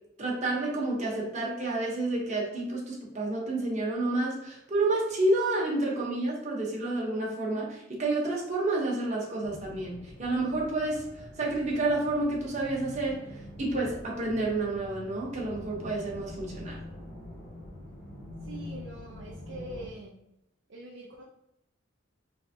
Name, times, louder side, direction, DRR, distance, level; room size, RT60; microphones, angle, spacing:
voice 1, 0.2-11.0 11.4-13.2 13.6-16.8, right 2 dB, 35° right, -3 dB, 0.9 m, -29 dB
sound 1, 9.4-19.9, left 1 dB, 55° left, 0.8 m, -45 dB
voice 2, 18.4-20.2 20.7-21.2, right 1 dB, 60° right, -3 dB, 0.5 m, -43 dB
3.3 x 3.1 x 2.8 m, 0.83 s
head